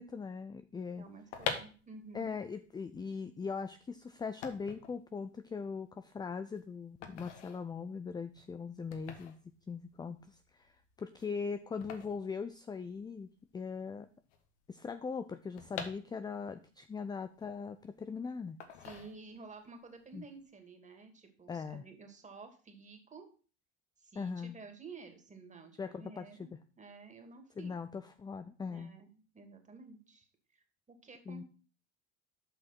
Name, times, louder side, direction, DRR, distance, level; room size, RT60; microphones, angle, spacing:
voice 1, 0.0-1.0 2.1-9.4 9.7-10.7 11.0-13.3 13.5-14.1 14.7-18.6 20.1-20.2 21.5-21.8 24.2-24.6 25.8-26.5 27.6-28.9 31.3-31.4, left 5 dB, 10° left, 10 dB, 0.4 m, -40 dB
voice 2, 1.0-2.3 18.8-23.3 24.0-27.7 28.7-31.4, right 4 dB, 20° right, 5 dB, 2.4 m, -52 dB
sound 1, 1.1-13.2 13.5-13.6 13.7-16.6 17.0-18.0 18.6-19.6 19.9-20.2, left 7 dB, 70° left, 1.6 m, -45 dB
7.8 x 5.8 x 5.9 m, 0.38 s
hypercardioid pair, 85°, 35 cm